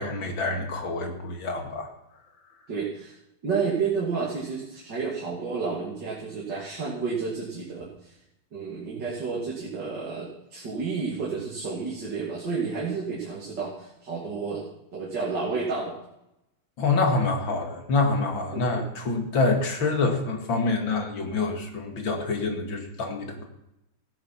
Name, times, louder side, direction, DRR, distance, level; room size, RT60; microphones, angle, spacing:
voice 1, 0.0-1.9 16.8-23.4, left 3 dB, 80° left, 3 dB, 2.9 m, -26 dB
voice 2, 2.7-3.2 3.4-8.2 8.5-16.0 18.5-18.8, right 5 dB, 65° right, -5 dB, 3.3 m, -31 dB
15.5 x 10.5 x 5.9 m, 0.85 s
omnidirectional pair, 2.1 m